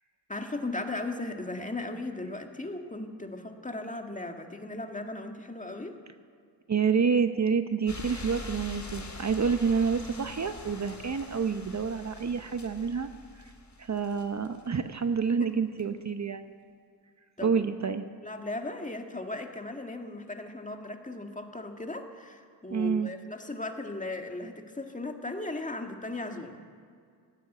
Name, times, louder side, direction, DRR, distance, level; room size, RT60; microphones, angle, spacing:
voice 1, 0.3-6.0 15.4-15.5 17.4-17.6 18.2-26.6, left 2 dB, 20° left, 4 dB, 2.0 m, -37 dB
voice 2, 6.7-13.1 13.8-16.5 17.4-18.0 22.7-23.1, right 6 dB, 40° right, 9 dB, 0.9 m, -28 dB
sound 1, 7.9-14.8 15.8-15.9, left 2 dB, 40° left, 2.8 m, -44 dB
17.5 x 9.1 x 9.2 m, 2.2 s
cardioid pair, 60°, 41 cm